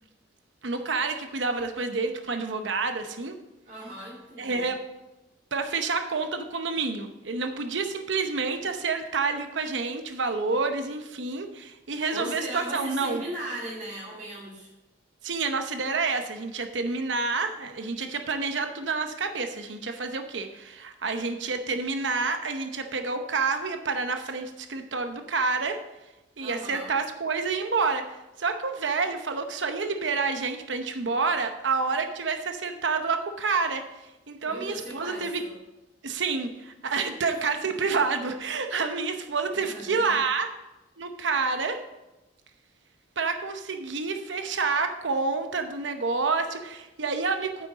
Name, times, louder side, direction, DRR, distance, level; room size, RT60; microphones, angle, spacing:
voice 1, 0.6-3.3 4.4-4.8 5.5-13.2 15.2-25.8 26.4-28.1 28.4-33.8 34.3-35.4 36.0-40.5 41.0-41.8 43.2-47.7, right 4 dB, 80° right, 7 dB, 0.8 m, -28 dB
voice 2, 3.6-4.7 12.1-14.7 26.4-27.0 34.4-35.6 37.3-37.9 39.5-40.2, right 1 dB, 40° right, -5 dB, 2.7 m, -38 dB
9.3 x 8.5 x 4.1 m, 1.0 s
head